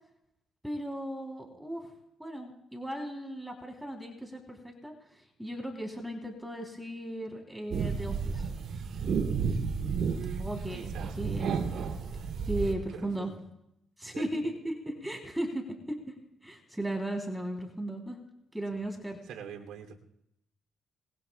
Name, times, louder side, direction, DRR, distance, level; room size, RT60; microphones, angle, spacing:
voice 1, 0.6-1.9 2.2-4.9 5.4-8.5 10.4-11.5 12.5-13.3 14.0-16.1 16.4-18.2 18.5-19.2, right 1 dB, 5° right, 1 dB, 3.4 m, -36 dB
sound 1, 7.7-12.7, right 5 dB, 65° right, 3.0 m, -32 dB
voice 2, 10.1-11.1 12.5-13.4 14.1-14.2 19.3-20.0, right 7 dB, 85° right, 2 dB, 2.8 m, -44 dB
27.5 x 21.5 x 2.3 m, 0.81 s
cardioid pair, 90°, 0 cm